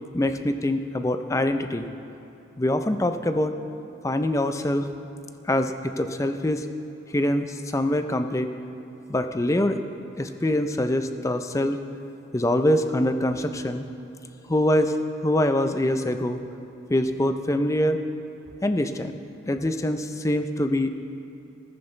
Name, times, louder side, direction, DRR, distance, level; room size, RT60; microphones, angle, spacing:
voice 1, 0.1-1.9 2.6-3.5 4.0-4.9 5.4-6.7 7.1-8.5 9.1-9.8 10.2-11.8 12.3-13.8 14.5-15.0 15.2-16.4 16.9-18.0 18.6-19.2 19.5-20.9, left 1 dB, 15° left, 8 dB, 0.4 m, -24 dB
14.5 x 14.5 x 3.3 m, 2.9 s
head